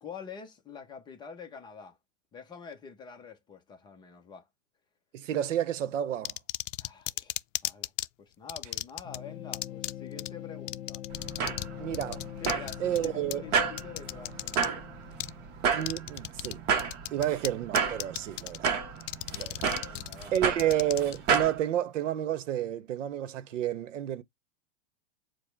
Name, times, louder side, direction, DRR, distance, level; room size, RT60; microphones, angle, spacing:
voice 1, 0.0-2.0 2.3-4.5 6.8-7.3 7.6-7.9 8.2-11.0 12.4-14.8 18.5-18.6 19.8-20.3, left 6 dB, 10° left, 0.5 m, -46 dB
voice 2, 5.1-6.4 11.8-12.3 12.8-13.4 15.7-16.6 17.1-18.7 19.3-19.7 20.3-24.2, right 11 dB, 90° right, 0.8 m, -30 dB
sound 1, 6.2-8.1 8.5-9.2 9.5-9.9 10.2-10.3 10.7-11.7 11.9-14.7 15.2-15.3 15.8-16.5 16.8-17.5 17.8-18.7 19.0-21.4, left 15 dB, 90° left, 0.5 m, -34 dB
sound 2, 9.0-15.7, left 13 dB, 50° left, 0.9 m, -44 dB
sound 3, 11.1-21.6, right 6 dB, 30° right, 0.8 m, -32 dB
5.0 x 2.1 x 4.4 m
supercardioid pair, 150°, 36 cm